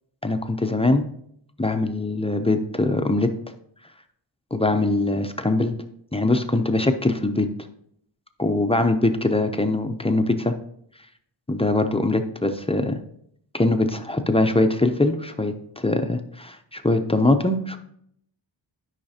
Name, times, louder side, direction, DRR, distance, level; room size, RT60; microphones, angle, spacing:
voice 1, 0.2-1.0 1.6-3.3 4.5-5.7 6.1-7.5 8.4-10.6 11.5-13.0 13.5-17.8, left 2 dB, 15° left, 6 dB, 0.4 m, -22 dB
12.0 x 5.7 x 2.7 m, 0.70 s
wide cardioid pair, 150°, 46 cm